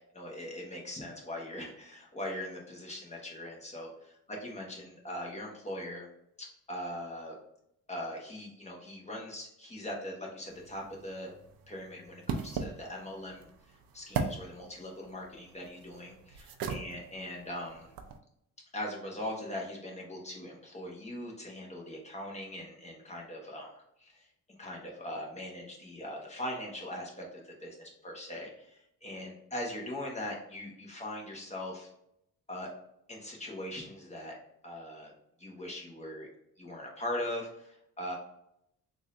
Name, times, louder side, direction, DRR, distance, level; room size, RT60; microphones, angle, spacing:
voice 1, 0.1-4.1 4.4-6.1 6.4-7.3 7.9-11.3 11.7-13.5 13.9-17.9 18.7-24.3 24.6-31.9 32.5-32.7 33.1-34.4 34.6-35.1 35.4-36.3 36.6-38.2, left 1 dB, 20° left, -2 dB, 1.2 m, -41 dB
sound 1, 10.5-18.2, right 5 dB, 85° right, 0.6 m, -40 dB
3.7 x 2.7 x 3.1 m, 0.75 s
cardioid pair, 105°, 35 cm